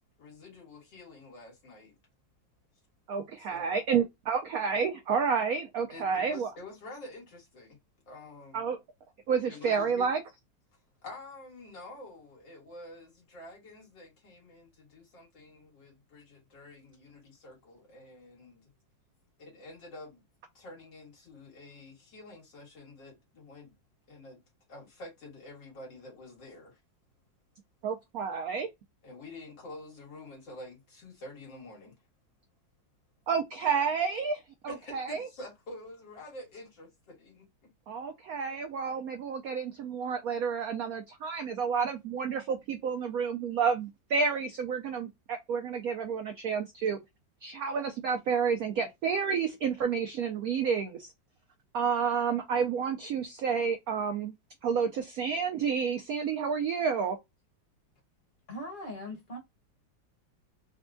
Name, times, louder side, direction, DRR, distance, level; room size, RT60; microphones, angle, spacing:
voice 1, 0.2-1.9 3.4-3.8 5.9-7.8 8.1-8.7 9.5-10.1 10.7-18.7 19.4-20.2 20.5-23.7 24.1-24.4 24.7-26.8 29.0-32.0 34.7-37.5, left 2 dB, 75° left, 2.3 m, -48 dB
voice 2, 3.1-6.5 8.5-8.8 9.3-10.2 27.8-28.7 33.3-35.3 37.9-47.0 47.4-51.1 51.7-54.3 54.6-57.2, right 6 dB, 75° right, 0.8 m, -30 dB
voice 3, 58.5-59.4, left 1 dB, 30° left, 1.2 m, -40 dB
4.3 x 2.2 x 2.4 m
omnidirectional pair, 2.0 m